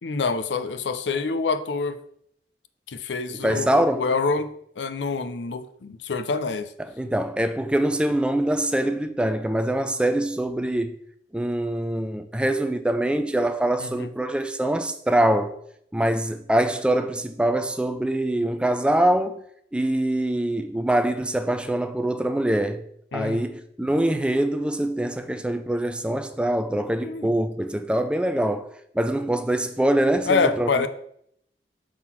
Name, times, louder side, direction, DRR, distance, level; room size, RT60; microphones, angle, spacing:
voice 1, 0.0-2.0 2.9-4.5 4.8-6.7 13.8-14.1 23.1-23.5 27.0-27.3 30.3-30.9, left 4 dB, 85° left, 0.6 m, -26 dB
voice 2, 3.4-4.1 6.8-11.0 11.3-15.6 15.9-19.4 19.7-22.8 23.1-28.7 28.9-30.7, right 1 dB, 5° right, 0.3 m, -24 dB
6.4 x 3.8 x 5.8 m
head